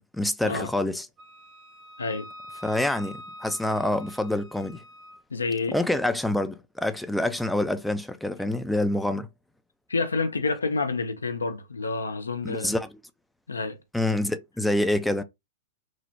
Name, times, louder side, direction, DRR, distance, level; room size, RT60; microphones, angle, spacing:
voice 1, 0.1-1.1 2.6-4.8 5.7-9.3 12.4-12.9 13.9-15.2, left 1 dB, ahead, 0.3 m, -26 dB
Wind instrument woodwind instrument, 1.2-5.2, equal, 35° right, 0.9 m, -45 dB
voice 2, 5.3-5.8 9.9-12.8 13.5-13.8, left 4 dB, 90° left, 0.5 m, -28 dB
3.0 x 2.0 x 2.7 m
hypercardioid pair, 110°, 0 cm